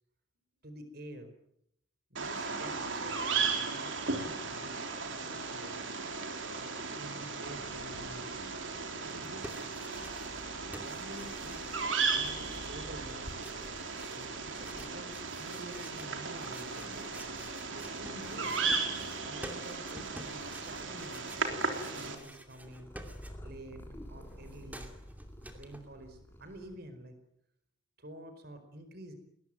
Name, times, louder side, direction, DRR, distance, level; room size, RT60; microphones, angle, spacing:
voice 1, 0.6-1.3 2.1-5.8 6.6-8.3 9.0-9.6 10.7-11.8 12.1-13.5 14.1-17.1 17.7-18.8 19.2-22.9 23.4-23.8 24.1-24.9 25.5-27.2 28.0-29.1, right 1 dB, 50° right, 8 dB, 4.7 m, -49 dB
Bird vocalization bird call bird song, 2.2-22.2, right 4 dB, 65° right, 3.8 m, -36 dB
Purr, 7.4-26.8, equal, 10° left, 3.6 m, -53 dB
sound 1, 9.1-10.5 10.7-23.7 23.9-25.8, right 1 dB, 10° right, 2.6 m, -50 dB
21.5 x 19.5 x 9.2 m, 0.73 s
head